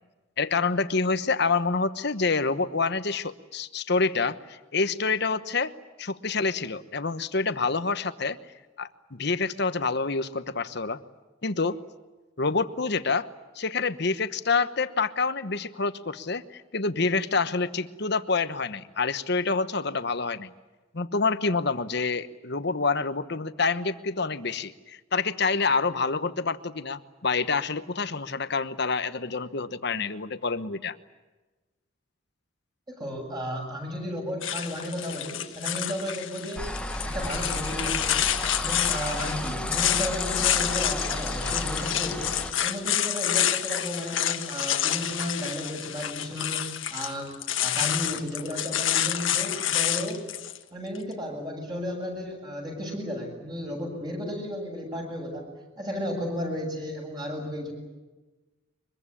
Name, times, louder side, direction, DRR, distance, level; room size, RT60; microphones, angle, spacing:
voice 1, 0.4-5.7 6.0-8.4 8.8-11.0 11.4-11.8 12.4-13.3 13.5-20.5 20.9-30.9, left 4 dB, 55° left, 12 dB, 1.1 m, -27 dB
voice 2, 32.9-36.7 37.0-38.2 38.6-47.3 47.6-50.2 50.7-55.4 55.8-57.7, equal, 20° right, 1 dB, 7.8 m, -34 dB
sound 1, 34.4-50.6, left 11 dB, 75° left, 1.5 m, -28 dB
sound 2, 36.6-42.5, left 1 dB, 5° left, 1.1 m, -33 dB
24.0 x 22.5 x 9.9 m, 1.2 s
head